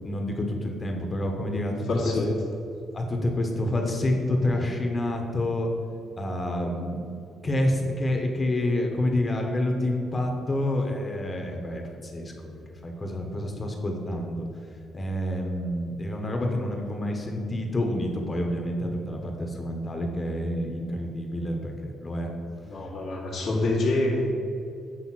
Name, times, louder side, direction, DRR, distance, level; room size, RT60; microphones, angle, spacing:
voice 1, 0.0-2.1 2.9-5.7 6.2-7.0 7.4-14.4 14.9-21.7 22.0-22.3, left 1 dB, 30° left, 2 dB, 1.3 m, -28 dB
voice 2, 1.9-2.3 22.7-24.3, left 2 dB, 60° left, -5 dB, 1.8 m, -26 dB
8.0 x 3.6 x 5.9 m, 2.5 s
cardioid pair, 90°, 0 cm